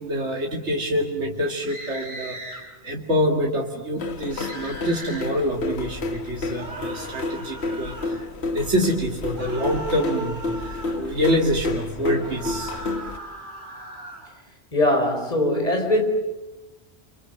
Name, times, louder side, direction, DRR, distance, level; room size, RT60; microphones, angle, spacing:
voice 1, 0.0-12.8, equal, 85° right, 0 dB, 2.7 m, -26 dB
sound 1, 1.6-2.6 4.3-5.3 6.6-8.2 9.3-11.0 12.1-14.3, right 1 dB, 45° right, 5.9 m, -38 dB
sound 2, 4.0-13.2, left 3 dB, 65° left, 1.6 m, -30 dB
voice 2, 14.7-16.0, left 1 dB, 35° left, 4 dB, 4.4 m, -21 dB
29.0 x 26.0 x 7.7 m, 1.0 s
omnidirectional pair, 1.2 m